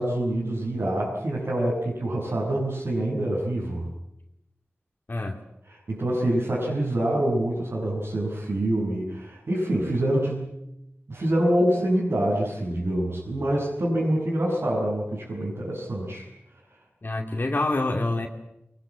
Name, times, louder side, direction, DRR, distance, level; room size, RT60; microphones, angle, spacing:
voice 1, 0.0-3.9 5.7-10.6 11.1-16.3, right 1 dB, 80° right, -6 dB, 7.1 m, -26 dB
voice 2, 5.1-5.4 17.0-18.3, left 2 dB, 50° left, 2 dB, 2.5 m, -26 dB
23.0 x 22.0 x 8.7 m, 0.84 s
wide cardioid pair, 65°, 4 cm